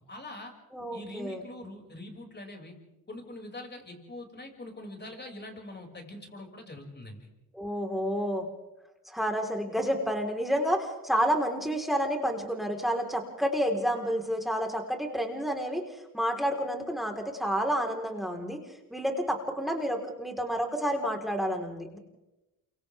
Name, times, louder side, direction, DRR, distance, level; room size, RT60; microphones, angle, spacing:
voice 1, 0.1-0.5 0.9-2.7 3.1-7.3, left 1 dB, 30° left, 2 dB, 6.3 m, -43 dB
voice 2, 0.7-1.4 7.5-8.5 9.1-18.6 18.9-22.0, equal, ahead, 2 dB, 4.2 m, -30 dB
29.0 x 25.0 x 3.6 m, 0.96 s
supercardioid pair, 70°, 36 cm